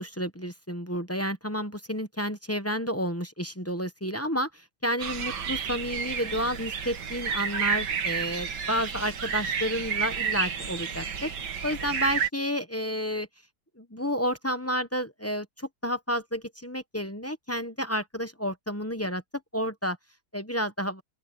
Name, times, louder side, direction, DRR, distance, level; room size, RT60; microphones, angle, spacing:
voice 1, 0.0-13.3 13.8-19.2 19.5-20.0 20.3-21.0, equal, 10° left, 0.8 m, -31 dB
sound 1, 5.0-12.3, right 6 dB, 85° right, 2.2 m, -31 dB
open air
omnidirectional pair, 1.8 m